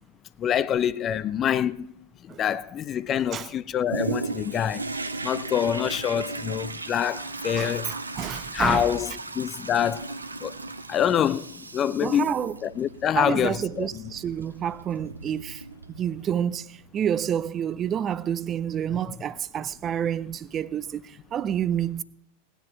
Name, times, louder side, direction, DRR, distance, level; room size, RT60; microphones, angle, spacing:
voice 1, 0.4-2.0 2.4-4.9 5.2-7.9 8.5-10.1 10.4-10.5 10.9-12.3 12.6-13.9, left 9 dB, 30° left, 0.4 m, -26 dB
Toilet flush, 3.9-16.3 16.8-16.9, right 3 dB, 80° right, 0.7 m, -36 dB
voice 2, 7.6-9.0 12.0-12.6 13.2-15.6 15.9-22.0, right 9 dB, 25° right, 0.5 m, -29 dB
18.0 x 10.0 x 4.5 m
figure-of-eight pair, 90°, 0 cm